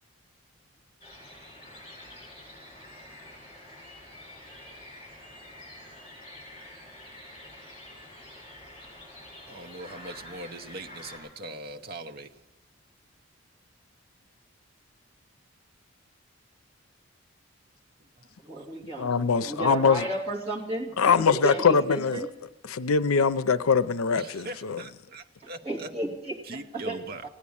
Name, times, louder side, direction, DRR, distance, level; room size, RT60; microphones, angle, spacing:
sound 1, 1.0-11.2, left 1 dB, 25° left, 6.3 m, -47 dB
voice 1, 9.5-12.3 18.2-18.3 24.2-25.9 26.5-27.3, right 1 dB, 45° right, 0.8 m, -40 dB
voice 2, 18.4-22.3 25.6-27.3, right 2 dB, 25° right, 2.4 m, -33 dB
voice 3, 19.0-20.0 21.0-22.3 22.7-24.8, left 5 dB, 85° left, 0.5 m, -23 dB
16.5 x 9.6 x 8.6 m
head